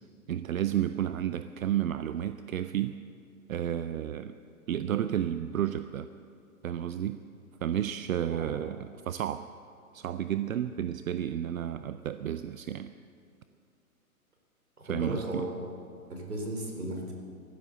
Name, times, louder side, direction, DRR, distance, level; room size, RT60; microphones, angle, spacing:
voice 1, 0.3-3.0 3.5-4.3 4.7-6.1 6.6-7.2 7.6-9.5 9.9-12.9 14.9-15.5, right 10 dB, 65° right, 12 dB, 0.6 m, -31 dB
voice 2, 14.8-15.5 16.1-17.1, right 1 dB, 90° right, 1 dB, 3.7 m, -35 dB
15.0 x 13.0 x 6.6 m, 2.4 s
figure-of-eight pair, 125°, 44 cm